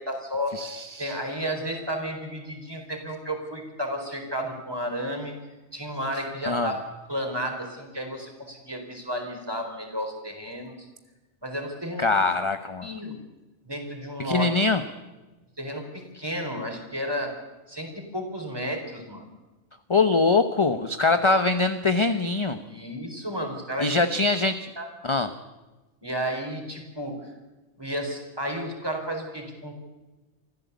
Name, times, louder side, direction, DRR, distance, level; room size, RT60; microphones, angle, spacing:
voice 1, 0.0-5.3 5.7-6.8 7.1-10.8 11.4-12.1 12.8-13.2 13.7-14.5 15.6-17.3 17.7-19.3 21.0-21.2 22.7-24.0 24.8-24.9 26.0-27.2 27.8-29.8, equal, 20° right, 3 dB, 4.5 m, -32 dB
voice 2, 0.5-1.1 6.4-6.7 12.0-12.9 14.2-14.8 19.9-22.6 23.8-24.7 25.0-25.3, left 3 dB, 25° left, 9 dB, 0.9 m, -23 dB
24.5 x 15.5 x 8.3 m, 1.1 s
omnidirectional pair, 1.3 m